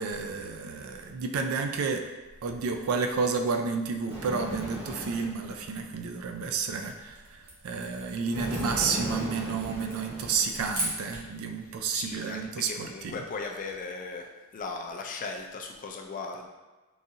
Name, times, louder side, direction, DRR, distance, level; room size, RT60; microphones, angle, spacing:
voice 1, 0.0-2.0 2.4-13.3, right 5 dB, 70° right, 5 dB, 0.3 m, -31 dB
Bird, 4.1-5.5 8.3-10.8, equal, 30° right, 0.9 m, -37 dB
sound 1, 6.9-11.4, right 2 dB, 50° right, 1.1 m, -39 dB
voice 2, 11.9-12.4 12.7-16.5, left 4 dB, 40° left, 2 dB, 0.4 m, -37 dB
3.9 x 2.4 x 2.7 m, 1.2 s
head